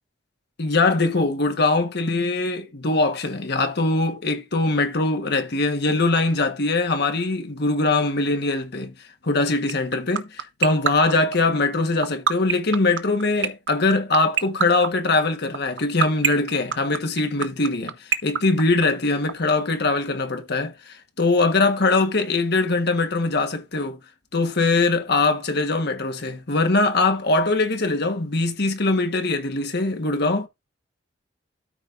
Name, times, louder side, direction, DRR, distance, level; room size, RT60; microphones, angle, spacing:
voice 1, 0.6-8.9 9.2-24.0 24.3-30.5, left 3 dB, 60° left, 1.4 m, -22 dB
sound 1, 9.7-19.3, right 7 dB, 70° right, 0.9 m, -21 dB
12.5 x 5.3 x 2.6 m
head